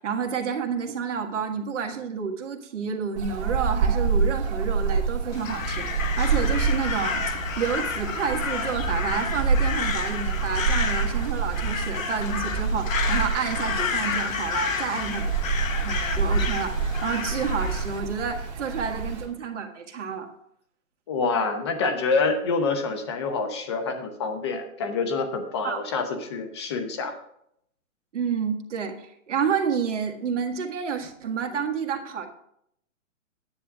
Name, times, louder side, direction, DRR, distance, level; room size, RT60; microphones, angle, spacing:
voice 1, 0.0-15.3 15.8-20.3 25.6-25.8 28.1-32.3, right 6 dB, 60° right, 3 dB, 1.7 m, -29 dB
sound 1, 3.2-19.3, right 5 dB, 30° right, 2.1 m, -27 dB
Crow, 5.3-18.0, left 5 dB, 75° left, 1.4 m, -31 dB
voice 2, 21.1-27.1, left 4 dB, 20° left, 7 dB, 0.8 m, -27 dB
10.0 x 9.4 x 3.6 m, 0.73 s
hypercardioid pair, 170°, 41 cm